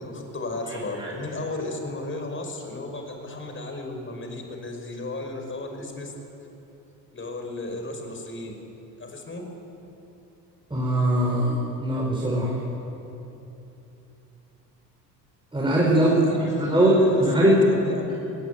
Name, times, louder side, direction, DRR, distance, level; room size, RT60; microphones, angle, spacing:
voice 1, 0.0-6.1 7.1-8.5 9.0-9.4 15.9-18.1, left 2 dB, 25° left, 4 dB, 5.5 m, -34 dB
voice 2, 10.7-12.5 15.5-16.1 16.4-16.9 17.2-17.6, right 1 dB, 10° right, -4 dB, 5.2 m, -21 dB
20.0 x 19.0 x 9.2 m, 2.9 s
hypercardioid pair, 70°, 49 cm